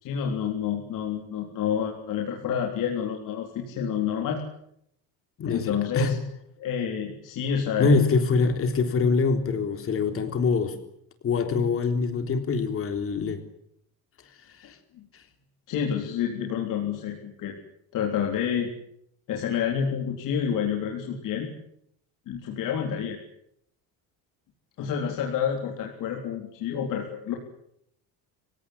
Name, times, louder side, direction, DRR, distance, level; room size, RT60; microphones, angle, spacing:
voice 1, 0.0-4.4 5.5-6.2 6.6-8.0 14.9-15.1 15.7-17.5 17.9-18.7 19.3-21.5 22.3-23.2 24.8-27.4, left 8 dB, 55° left, 1 dB, 3.8 m, -28 dB
voice 2, 5.4-6.2 7.8-10.8 11.2-13.4 14.6-14.8, left 4 dB, 35° left, 7 dB, 3.6 m, -24 dB
27.0 x 17.5 x 9.9 m, 0.74 s
cardioid pair, 165°, 37 cm